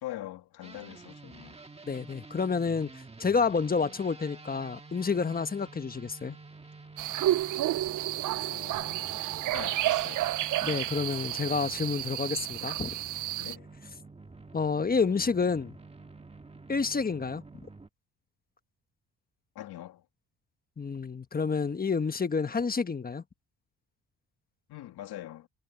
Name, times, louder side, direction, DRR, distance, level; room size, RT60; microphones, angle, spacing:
voice 1, 0.0-1.6 8.5-10.3 13.4-13.7 19.6-20.0 24.7-25.5, left 14 dB, 80° left, 2.2 m, -43 dB
sound 1, 0.6-17.9, right 3 dB, 15° right, 1.6 m, -49 dB
voice 2, 1.9-6.4 10.6-13.0 14.5-15.7 16.7-17.4 20.8-23.2, left 5 dB, 25° left, 1.2 m, -29 dB
sound 2, 7.0-13.6, right 14 dB, 55° right, 0.5 m, -31 dB
cardioid pair, 110°, 38 cm